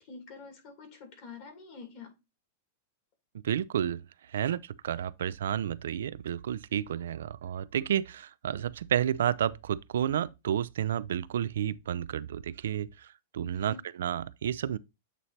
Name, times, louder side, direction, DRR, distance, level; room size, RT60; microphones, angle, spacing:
voice 1, 0.0-2.1 13.6-13.8, left 4 dB, 50° left, 2.5 m, -46 dB
voice 2, 3.4-4.0 4.3-13.1 13.3-14.8, right 10 dB, 80° right, 0.3 m, -31 dB
8.1 x 3.0 x 4.2 m
hypercardioid pair, 130°, 0 cm